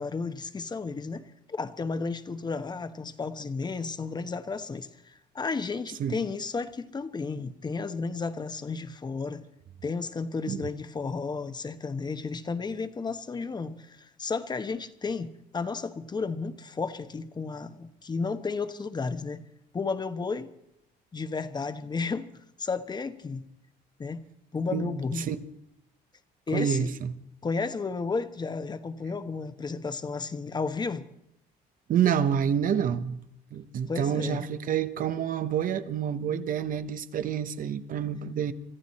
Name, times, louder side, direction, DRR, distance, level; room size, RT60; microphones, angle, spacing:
voice 1, 0.0-9.4 9.8-19.4 19.7-20.5 21.1-22.3 22.6-23.5 24.0-24.2 24.5-25.3 26.5-26.9 27.4-31.1 33.9-34.5, left 4 dB, 25° left, 1.0 m, -33 dB
voice 2, 24.7-25.4 26.5-27.1 31.9-33.2 33.5-38.5, right 8 dB, 55° right, 1.0 m, -28 dB
24.5 x 14.0 x 4.2 m
cardioid pair, 110°, 17 cm